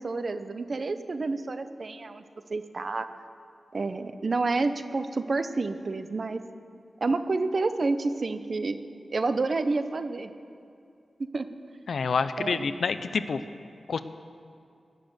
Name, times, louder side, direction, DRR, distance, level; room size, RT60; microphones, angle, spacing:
voice 1, 0.0-2.2 2.5-3.1 3.7-6.4 7.0-8.8 9.1-10.3 11.2-11.5 12.4-12.8, right 3 dB, 55° right, 10 dB, 0.8 m, -29 dB
voice 2, 11.9-13.4 13.9-14.0, left 5 dB, 80° left, 11 dB, 0.6 m, -27 dB
18.5 x 6.8 x 9.3 m, 2.5 s
cardioid pair, 65°, 0 cm